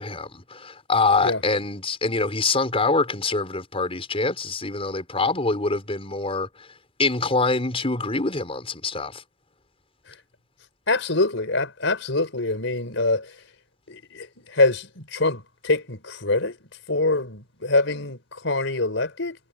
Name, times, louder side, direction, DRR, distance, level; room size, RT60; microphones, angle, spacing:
voice 1, 0.0-6.7 7.0-9.2, left 3 dB, 30° left, 5.1 m, -25 dB
voice 2, 10.9-13.3 13.9-16.6 16.9-19.4, left 2 dB, 75° left, 5.2 m, -24 dB
head